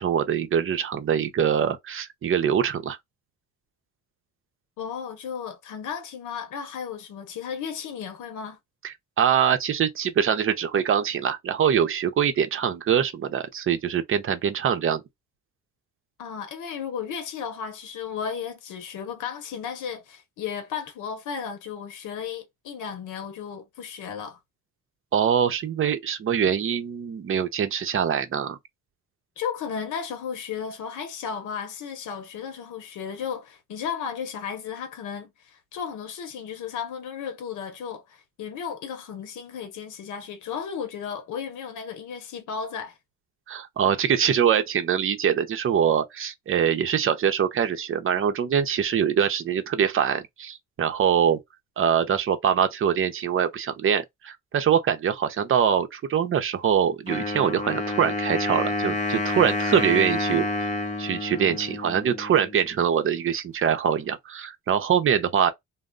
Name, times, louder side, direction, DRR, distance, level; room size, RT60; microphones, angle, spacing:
voice 1, 0.0-3.0 8.8-15.0 25.1-28.6 43.5-51.4 51.8-60.4 61.0-65.5, right 8 dB, 45° right, 0.6 m, -23 dB
voice 2, 4.8-8.6 16.2-24.4 29.4-43.0, left 7 dB, 80° left, 0.8 m, -34 dB
Wind instrument woodwind instrument, 57.1-62.7, left 2 dB, 25° left, 0.7 m, -29 dB
2.2 x 2.0 x 3.7 m
cardioid pair, 90°, 30 cm